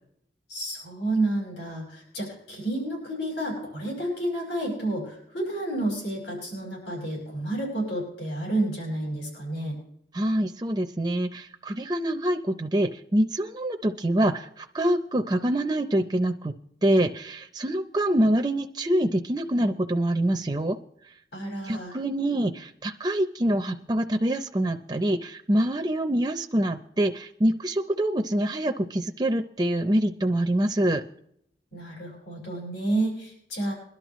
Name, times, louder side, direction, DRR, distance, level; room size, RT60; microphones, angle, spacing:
voice 1, 0.5-9.8 21.3-21.9 31.7-33.7, right 1 dB, 85° left, -1 dB, 5.5 m, -30 dB
voice 2, 10.1-16.5 16.8-20.8 21.6-31.0, right 1 dB, 20° right, 5 dB, 0.5 m, -25 dB
22.0 x 11.5 x 3.1 m, 0.71 s
head